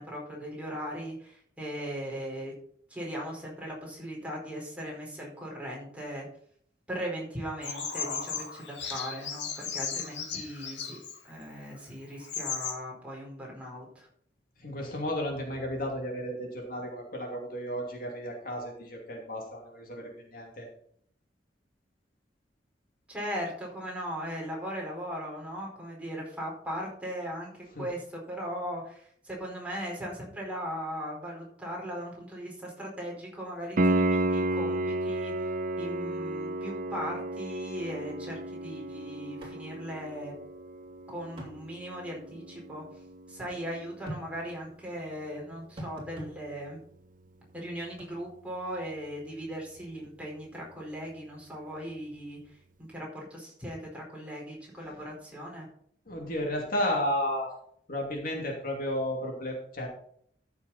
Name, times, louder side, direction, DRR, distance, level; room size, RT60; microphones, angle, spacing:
voice 1, 0.0-2.5 2.9-6.3 6.9-11.0 11.2-14.1 23.1-27.5 27.8-40.3 41.1-42.8 43.3-46.8 47.5-55.7, equal, 10° right, -3 dB, 4.7 m, -38 dB
Bird vocalization bird call bird song, 7.6-11.2 11.8-11.9 12.2-12.7, left 6 dB, 90° left, 2.0 m, -36 dB
voice 2, 14.6-20.7 27.8-27.9 54.8-54.9 56.1-57.5 57.9-59.9, left 1 dB, 55° left, 0 dB, 2.7 m, -33 dB
Piano, 33.8-44.4 47.7-47.8, right 1 dB, 50° right, 0.7 m, -32 dB
sound 1, 39.4-39.6 39.9-40.0 41.4-41.6 44.1-44.3 45.8-46.3 48.0-48.1, right 1 dB, 30° right, 3.2 m, -40 dB
13.5 x 7.0 x 4.2 m, 0.62 s
head